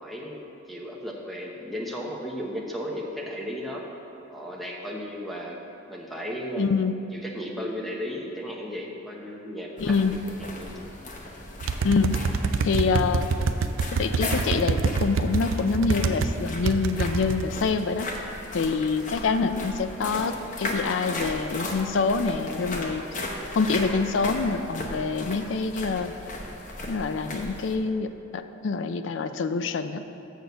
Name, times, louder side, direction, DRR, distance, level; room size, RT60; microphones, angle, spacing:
voice 1, 0.0-0.4 0.7-3.9 4.3-5.6 5.9-6.7 7.1-10.7, equal, ahead, -2 dB, 0.9 m, -35 dB
voice 2, 6.6-7.0 9.8-10.1 11.8-12.2 12.6-13.3 13.9-18.1 18.5-23.0 23.5-26.1 26.9-30.0, left 4 dB, 70° left, 10 dB, 0.4 m, -26 dB
sound 1, 9.8-27.8, left 2 dB, 40° left, 0.9 m, -36 dB
sound 2, 11.6-16.3 16.7-17.4, right 4 dB, 85° right, 0.4 m, -26 dB
6.6 x 6.4 x 6.7 m, 3.0 s
head